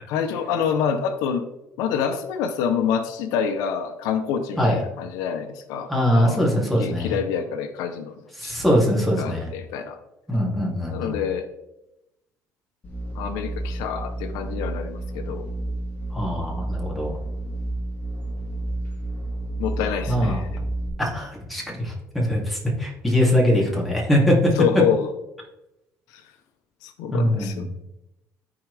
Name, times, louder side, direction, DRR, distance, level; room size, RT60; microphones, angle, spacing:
voice 1, 0.1-1.4 1.8-6.5 6.8-8.1 8.4-8.6 9.2-10.0 10.9-11.5 13.1-15.5 19.6-20.5 23.5-23.6 24.6-25.1 26.1-26.2 26.8-27.6, left 7 dB, 90° left, 8 dB, 0.8 m, -27 dB
voice 2, 5.9-7.2 8.4-9.5 10.3-11.2 16.1-17.1 20.1-20.4 21.0-24.5 27.1-27.7, equal, ahead, -4 dB, 2.9 m, -22 dB
sound 1, 12.8-20.9, right 2 dB, 25° left, 3.5 m, -31 dB
14.0 x 4.7 x 3.5 m, 0.91 s
cardioid pair, 110°, 6 cm